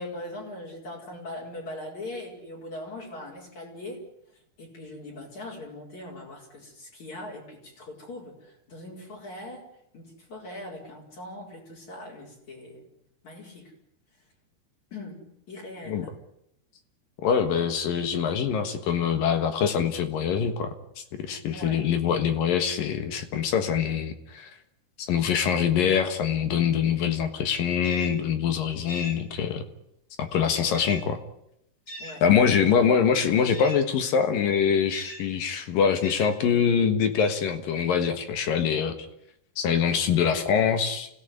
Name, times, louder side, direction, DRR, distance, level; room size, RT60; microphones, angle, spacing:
voice 1, 0.0-4.0 4.6-9.7 9.9-12.8 13.2-13.7 14.9-16.1 21.5-21.8 30.6-31.0 32.0-32.8 33.1-33.3, left 1 dB, 45° left, 0 dB, 5.8 m, -41 dB
voice 2, 17.2-24.5 25.1-29.6 30.2-31.2 32.2-39.0 39.6-41.1, left 7 dB, 65° left, 8 dB, 2.9 m, -24 dB
sound 1, 27.8-28.2 28.9-29.2 30.7-31.1 31.9-32.2 33.5-33.9 34.9-35.3 36.0-36.4, left 1 dB, 30° left, 4.3 m, -40 dB
26.5 x 17.0 x 9.7 m, 0.80 s
omnidirectional pair, 4.7 m